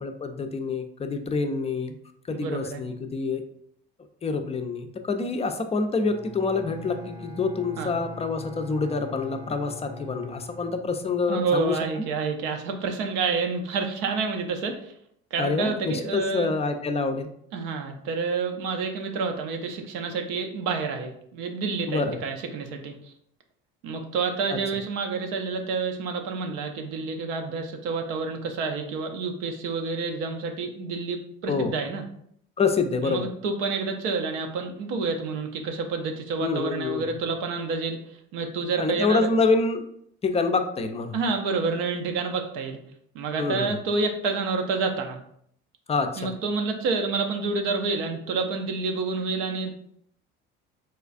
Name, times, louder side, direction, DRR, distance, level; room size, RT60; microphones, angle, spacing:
voice 1, 0.0-1.9 2.3-3.4 4.2-12.1 15.4-17.3 21.9-22.2 24.5-24.6 31.5-31.8 32.6-33.3 36.4-37.1 38.8-39.8 40.2-41.2 43.4-43.8 45.9-46.3, left 4 dB, 20° left, 7 dB, 0.4 m, -26 dB
voice 2, 2.3-2.8 7.8-7.9 11.3-14.9 15.3-16.5 17.5-22.9 23.8-32.0 33.0-38.0 38.3-39.3 41.1-42.8 43.1-45.2 46.2-49.8, right 4 dB, 80° right, 4 dB, 0.6 m, -28 dB
Bowed string instrument, 6.0-11.5, left 2 dB, 15° right, 0.7 m, -42 dB
4.2 x 2.3 x 2.4 m, 0.69 s
supercardioid pair, 70°, 30 cm